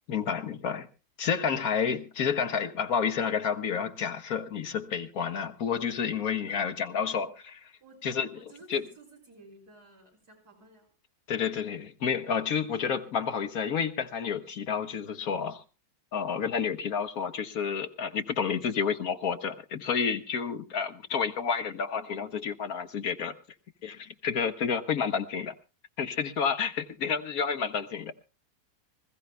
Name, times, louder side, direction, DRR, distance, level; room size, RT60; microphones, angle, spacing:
voice 1, 0.1-0.9 1.2-7.6 8.0-8.3 8.7-8.8 11.3-15.6 16.1-23.3 23.8-25.5 26.0-28.2, left 6 dB, 70° left, 1.7 m, -30 dB
voice 2, 6.5-7.3 7.8-8.0 8.3-10.9, right 2 dB, 80° right, 6.0 m, -55 dB
26.5 x 15.0 x 2.2 m
omnidirectional pair, 1.6 m